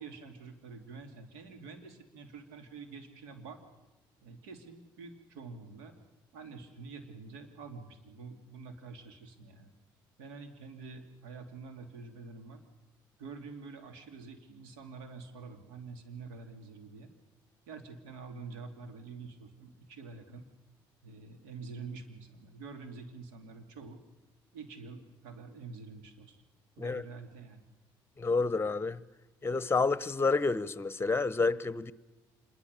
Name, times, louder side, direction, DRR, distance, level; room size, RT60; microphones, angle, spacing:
voice 1, 0.0-3.6 4.2-5.9 6.3-9.7 10.2-12.6 13.2-17.1 17.7-20.5 21.0-24.0 24.5-26.4 26.8-27.6, right 4 dB, 80° right, 2.8 m, -47 dB
voice 2, 28.2-29.0 29.4-31.9, left 4 dB, 25° left, 1.1 m, -29 dB
26.0 x 21.5 x 6.9 m
hypercardioid pair, 60°, 11 cm